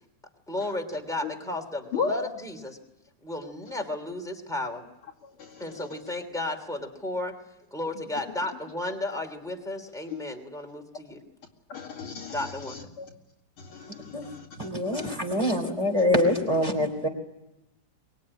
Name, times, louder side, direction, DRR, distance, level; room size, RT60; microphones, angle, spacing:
voice 1, 0.5-2.8 3.2-4.8 5.6-7.4 7.7-11.2 12.3-12.8, left 1 dB, ahead, 3 dB, 2.9 m, -33 dB
voice 2, 1.9-2.3 5.4-5.7 10.1-10.2 11.7-13.1 13.6-15.2, left 5 dB, 90° left, -1 dB, 3.2 m, -35 dB
voice 3, 14.6-17.1, left 1 dB, 15° right, 3 dB, 3.6 m, -25 dB
24.0 x 20.5 x 9.9 m, 0.90 s
omnidirectional pair, 2.3 m